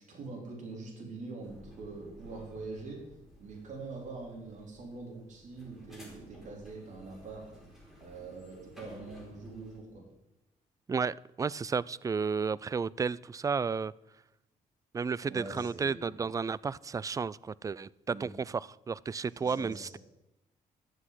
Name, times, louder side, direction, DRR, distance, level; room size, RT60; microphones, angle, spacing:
voice 1, 0.1-3.0 3.4-7.5 8.0-10.1 15.3-16.2 18.1-18.2 19.4-20.0, right 3 dB, 55° right, -1 dB, 4.0 m, -44 dB
sound 1, 1.4-9.8, right 1 dB, ahead, 4.6 m, -54 dB
voice 2, 10.9-13.9 14.9-18.6 18.9-20.0, right 5 dB, 25° right, 22 dB, 0.3 m, -32 dB
12.0 x 8.3 x 7.7 m, 0.95 s
cardioid pair, 105°, 15 cm